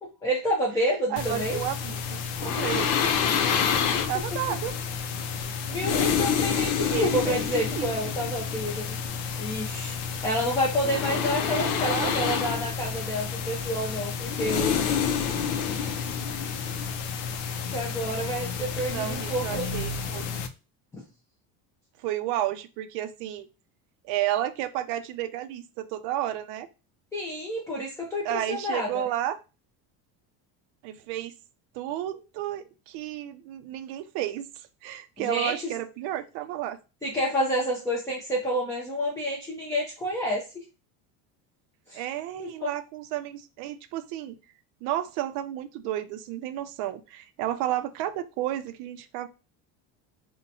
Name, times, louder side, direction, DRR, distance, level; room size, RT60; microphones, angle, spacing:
voice 1, 0.0-1.6 4.0-4.1 5.3-9.0 9.4-14.8 15.2-15.3 17.3-19.7 20.9-21.0 27.1-29.1 35.2-35.7 37.0-40.4 41.9-42.0 42.4-42.7, equal, 5° left, -3 dB, 0.4 m, -29 dB
voice 2, 1.1-3.0 4.1-4.7 6.9-7.4 7.7-7.9 11.5-12.3 18.9-20.2 22.0-23.5 24.0-26.7 28.2-29.4 30.8-31.4 31.7-34.5 34.8-36.8 41.9-44.4 44.8-49.3, right 13 dB, 65° right, 11 dB, 0.5 m, -32 dB
sound 1, 1.2-20.5, left 7 dB, 70° left, 0.6 m, -29 dB
2.7 x 2.1 x 4.0 m, 0.30 s
cardioid pair, 145°, 45 cm